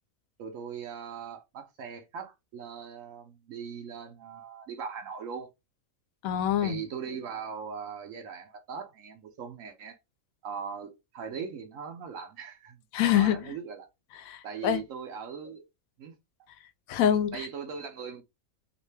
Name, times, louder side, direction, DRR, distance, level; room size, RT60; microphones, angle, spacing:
voice 1, 0.4-5.5 6.6-10.0 10.4-12.8 13.0-13.9 14.4-15.6 16.0-16.1 17.3-18.2, right 6 dB, 70° right, 1.0 m, -40 dB
voice 2, 6.2-6.8 12.9-13.5 14.1-14.8 16.9-17.5, left 10 dB, 85° left, 1.0 m, -26 dB
3.1 x 2.9 x 3.2 m
omnidirectional pair, 1.4 m